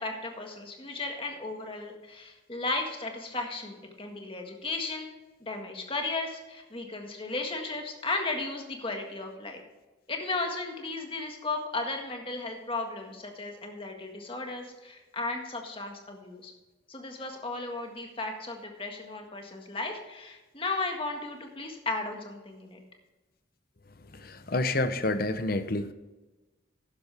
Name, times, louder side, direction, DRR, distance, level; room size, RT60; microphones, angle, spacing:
voice 1, 0.0-5.1 5.4-9.6 10.1-16.5 16.9-22.8, left 3 dB, 25° left, 3 dB, 1.7 m, -35 dB
voice 2, 24.1-25.9, left 2 dB, 50° left, 11 dB, 0.8 m, -29 dB
12.5 x 10.5 x 3.5 m, 1.2 s
head